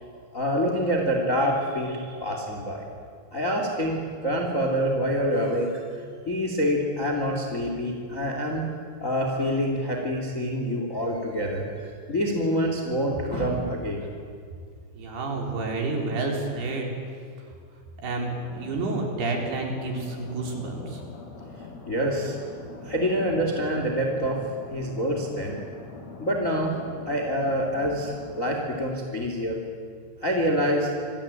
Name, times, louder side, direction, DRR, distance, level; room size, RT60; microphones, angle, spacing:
voice 1, 0.3-2.8 3.3-6.0 6.3-8.7 9.0-14.1 21.9-22.4 22.8-24.4 24.7-25.6 26.2-26.7 27.1-29.6 30.2-30.9, equal, 20° left, 2 dB, 2.3 m, -26 dB
voice 2, 15.0-16.9 18.0-21.0, right 3 dB, 55° right, 1 dB, 5.5 m, -29 dB
sound 1, 18.0-28.6, left 4 dB, 45° left, 2.9 m, -44 dB
27.5 x 22.0 x 9.0 m, 2.1 s
omnidirectional pair, 5.7 m